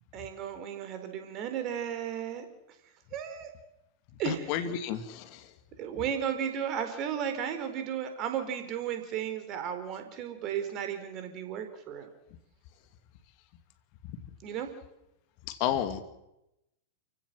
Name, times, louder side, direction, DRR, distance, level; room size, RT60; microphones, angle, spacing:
voice 1, 0.1-2.5 3.1-3.5 4.2-4.5 5.8-12.1 14.4-14.7, right 9 dB, 35° right, 8 dB, 4.4 m, -34 dB
voice 2, 4.2-5.5 15.5-16.0, left 10 dB, 45° left, 9 dB, 2.5 m, -31 dB
30.0 x 16.0 x 7.6 m, 0.87 s
figure-of-eight pair, 95°, 0 cm